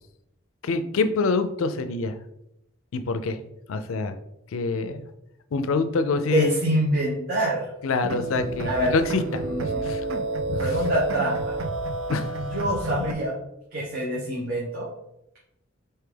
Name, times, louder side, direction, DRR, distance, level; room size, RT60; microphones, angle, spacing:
voice 1, 0.6-2.2 2.9-3.4 3.7-4.1 4.5-5.0 5.5-6.5 7.8-10.0 10.5-10.6 12.1-12.4, left 4 dB, 80° left, 10 dB, 0.4 m, -26 dB
voice 2, 6.3-7.7 8.6-8.9 9.4-9.8 10.6-11.5 12.4-13.4 13.7-14.9, right 1 dB, 45° right, -6 dB, 1.0 m, -25 dB
sound 1, 8.0-13.1, right 2 dB, 75° right, 0.4 m, -29 dB
4.4 x 3.4 x 3.3 m, 0.83 s
head